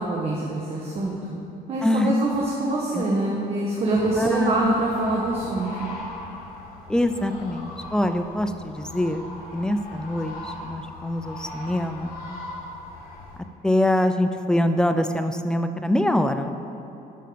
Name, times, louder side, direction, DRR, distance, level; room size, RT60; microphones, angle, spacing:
voice 1, 0.0-1.4 1.7-5.9, right 2 dB, 35° right, -3 dB, 1.3 m, -25 dB
voice 2, 1.8-2.1 2.9-3.1 4.2-4.5 6.9-9.2 9.5-12.1 13.6-16.5, left 1 dB, 5° left, 8 dB, 0.5 m, -24 dB
sound 1, 3.9-13.4, left 2 dB, 65° left, 2.2 m, -39 dB
11.5 x 5.7 x 5.1 m, 2.9 s
cardioid pair, 110°, 17 cm